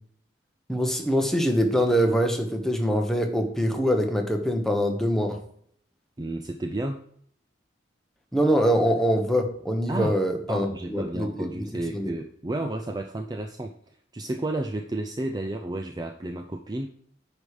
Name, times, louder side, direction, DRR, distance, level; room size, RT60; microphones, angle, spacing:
voice 1, 0.7-5.4 8.3-11.3 11.5-11.6 11.9-12.1, equal, ahead, 3 dB, 1.1 m, -24 dB
voice 2, 6.2-7.0 9.9-10.2 10.5-13.7 14.1-16.9, right 1 dB, 20° right, 4 dB, 0.5 m, -31 dB
9.2 x 5.1 x 4.9 m, 0.63 s
head